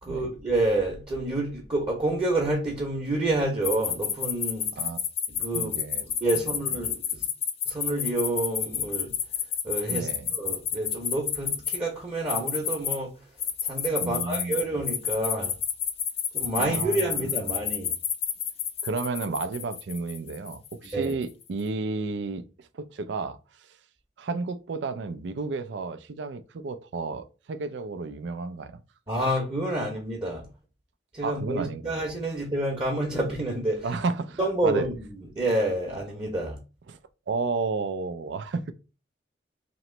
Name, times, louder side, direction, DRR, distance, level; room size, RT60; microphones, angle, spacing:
voice 1, 0.0-4.7 5.4-5.7 6.2-7.2 7.7-9.1 9.6-10.1 10.3-13.1 13.6-15.5 16.3-17.9 20.9-21.1 29.1-30.4 31.1-33.8 34.4-34.9 35.4-36.6, right 1 dB, 25° right, 0.9 m, -28 dB
sound 1, 3.6-11.8 12.3-13.0 13.4-21.2, left 8 dB, 30° left, 0.4 m, -29 dB
voice 2, 5.5-6.1 6.3-6.5 9.9-10.3 14.0-14.6 16.6-17.3 18.8-23.4 24.2-28.8 31.2-32.0 33.8-34.9 36.9-37.0 37.3-38.7, right 4 dB, 75° right, 0.4 m, -32 dB
3.0 x 3.0 x 4.3 m
head